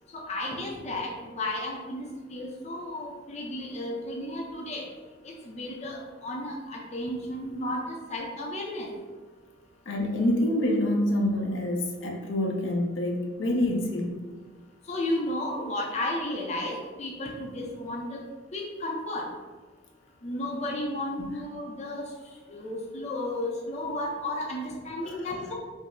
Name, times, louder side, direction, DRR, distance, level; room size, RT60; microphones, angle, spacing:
voice 1, 0.1-4.8 5.4-8.9 14.9-18.2 18.5-19.2 20.2-22.0 22.5-25.5, left 1 dB, 35° left, -1 dB, 0.5 m, -33 dB
voice 2, 9.9-14.3 25.0-25.3, left 1 dB, 75° left, 1 dB, 0.7 m, -27 dB
5.3 x 2.0 x 3.7 m, 1.4 s
head